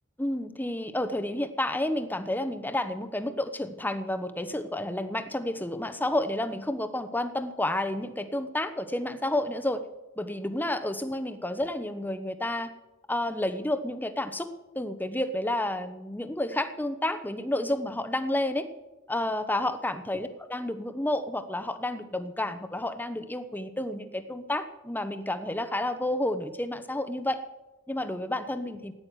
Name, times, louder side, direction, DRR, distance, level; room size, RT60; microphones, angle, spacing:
voice 1, 0.2-9.8 10.2-12.7 13.1-14.5 14.7-18.7 19.1-27.4 27.9-28.9, left 1 dB, 10° left, 10 dB, 1.0 m, -30 dB
15.5 x 9.7 x 9.2 m, 1.1 s
head